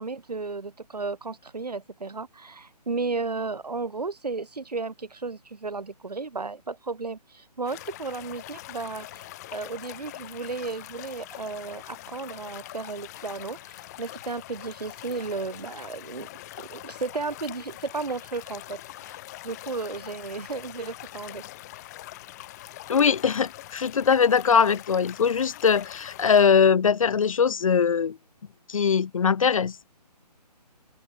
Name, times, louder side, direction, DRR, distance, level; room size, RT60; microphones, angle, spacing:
voice 1, 0.0-16.3 16.6-19.2 19.4-21.4, right 4 dB, 65° right, 5.0 m, -34 dB
sound 1, 7.6-26.5, left 16 dB, 25° left, 2.6 m, -43 dB
voice 2, 22.9-28.2 28.7-29.8, left 6 dB, 50° left, 0.4 m, -21 dB
figure-of-eight pair, 145°, 21 cm